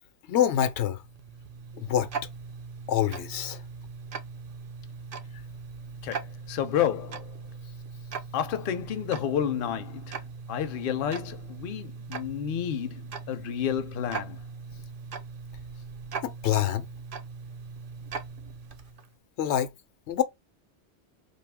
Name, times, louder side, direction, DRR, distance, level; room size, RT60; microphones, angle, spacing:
voice 1, 0.3-1.0 1.8-2.1 2.9-3.6 16.2-16.9 19.4-19.7 20.1-20.2, left 10 dB, 85° left, 0.9 m, -26 dB
Tick-tock, 0.8-19.1, right 5 dB, 60° right, 0.7 m, -40 dB
voice 2, 6.0-7.3 8.3-10.2 10.5-14.4, left 9 dB, 60° left, 0.7 m, -30 dB
2.6 x 2.4 x 3.3 m
omnidirectional pair, 1.1 m